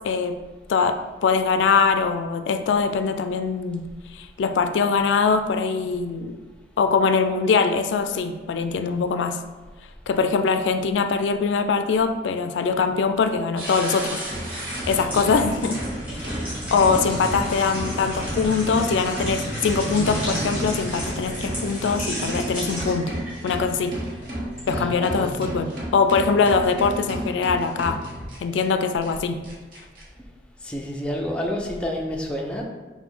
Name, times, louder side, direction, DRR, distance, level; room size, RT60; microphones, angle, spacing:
voice 1, 0.0-0.4 0.7-3.8 4.1-6.4 6.8-9.4 10.1-14.2 14.5-15.8 16.1-16.3 16.7-23.1 23.4-24.0 24.7-28.0 28.4-29.4, left 5 dB, 90° left, 8 dB, 0.3 m, -22 dB
sound 1, 13.6-28.6 29.0-29.1 29.4-30.0, right 1 dB, 50° right, 1.1 m, -33 dB
sound 2, 14.7-24.7 25.1-25.3, equal, 10° right, 1.4 m, -32 dB
voice 2, 24.7-25.4 30.6-32.6, equal, 5° left, -1 dB, 0.4 m, -29 dB
5.8 x 2.2 x 3.7 m, 1.3 s
head